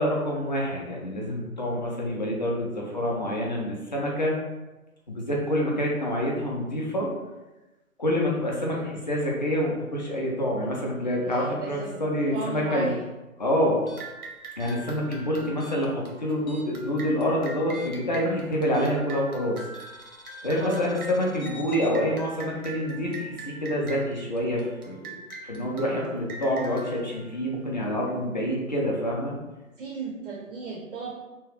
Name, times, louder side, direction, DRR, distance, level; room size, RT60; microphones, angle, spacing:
voice 1, 0.0-4.4 5.1-7.1 8.0-12.9 13.4-13.8 14.6-19.6 20.4-25.1 25.4-29.4, equal, 35° left, -2 dB, 0.4 m, -27 dB
voice 2, 11.2-12.0 12.3-13.1 20.5-20.9 29.8-31.2, right 4 dB, 55° right, 0 dB, 0.5 m, -35 dB
sound 1, 13.8-16.9 17.1-19.2 19.7-22.0, left 2 dB, 75° left, 0.8 m, -47 dB
sound 2, 14.0-28.1, right 2 dB, 85° right, 0.9 m, -43 dB
2.9 x 2.1 x 3.1 m, 1.1 s
figure-of-eight pair, 145°, 43 cm